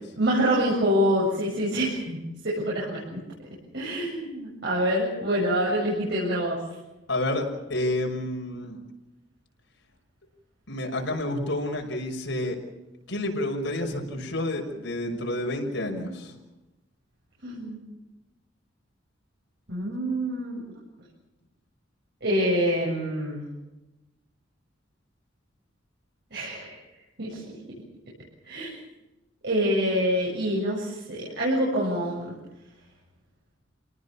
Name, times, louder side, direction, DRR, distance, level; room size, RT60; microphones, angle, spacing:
voice 1, 0.2-2.2 2.4-3.2 3.7-6.6 17.4-17.9 19.7-20.6 22.2-23.4 26.3-26.8 27.2-27.6 28.4-28.7 29.4-32.3, equal, 60° right, -5 dB, 7.5 m, -26 dB
voice 2, 7.1-7.4 7.7-8.8 10.7-12.6 13.1-16.3, left 1 dB, 70° left, 1 dB, 6.1 m, -29 dB
28.5 x 19.0 x 7.2 m, 1.0 s
head